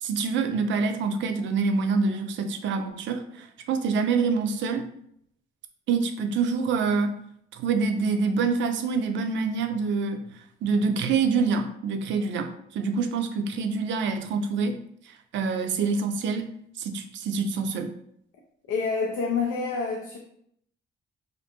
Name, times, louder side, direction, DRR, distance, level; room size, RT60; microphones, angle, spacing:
voice 1, 0.0-4.9 5.9-7.1 7.5-10.2 10.6-14.7 15.3-16.4 16.8-18.0, right 4 dB, 70° right, 7 dB, 0.4 m, -26 dB
voice 2, 18.7-20.2, left 5 dB, 80° left, 0 dB, 0.4 m, -27 dB
2.5 x 2.1 x 2.8 m, 0.69 s
cardioid pair, 90°, 20 cm